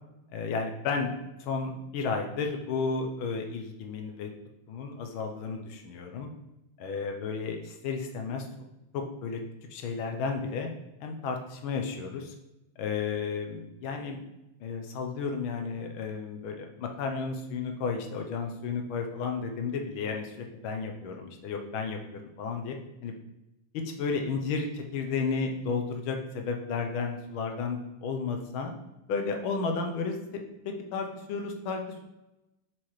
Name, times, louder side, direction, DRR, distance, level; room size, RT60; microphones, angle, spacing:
voice 1, 0.3-1.1 1.4-4.3 4.7-6.3 6.8-8.5 8.9-9.4 9.7-10.7 11.0-12.3 12.8-14.2 14.6-20.4 20.6-22.0 22.4-22.8 23.0-23.1 24.0-28.7 29.1-30.4 30.9-32.0, left 5 dB, 85° left, 4 dB, 1.6 m, -32 dB
7.3 x 4.8 x 3.1 m, 0.94 s
omnidirectional pair, 2.2 m